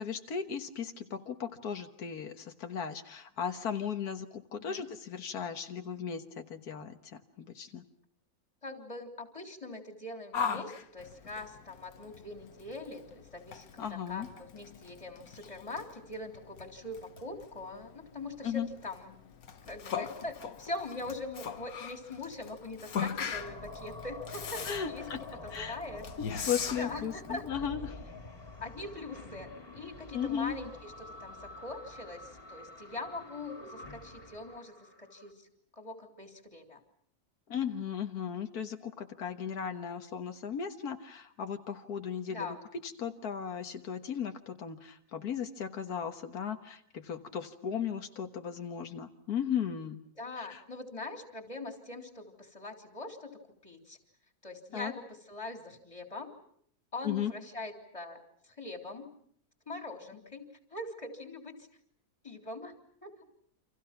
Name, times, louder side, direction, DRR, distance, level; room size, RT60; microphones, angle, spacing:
voice 1, 0.0-7.8 13.8-14.3 18.4-18.7 24.7-25.2 25.5-25.8 26.5-28.0 30.1-30.6 37.5-42.6 42.8-50.0 50.4-50.6 54.7-54.9 57.0-57.3, left 8 dB, 90° left, 6 dB, 1.9 m, -36 dB
voice 2, 4.6-4.9 8.6-19.2 19.7-26.1 26.3-26.5 26.8-27.4 28.6-35.5 35.7-36.8 42.3-42.7 50.2-54.0 54.4-56.4 56.9-59.1 59.7-61.7 62.2-62.7 63.0-63.1, left 2 dB, 20° left, 4 dB, 3.6 m, -42 dB
Yell, 10.3-27.5, left 7 dB, 70° left, 1.7 m, -41 dB
sound 1, 23.3-35.3, left 2 dB, 35° left, 3.0 m, -47 dB
29.5 x 27.0 x 5.9 m, 0.64 s
omnidirectional pair, 1.6 m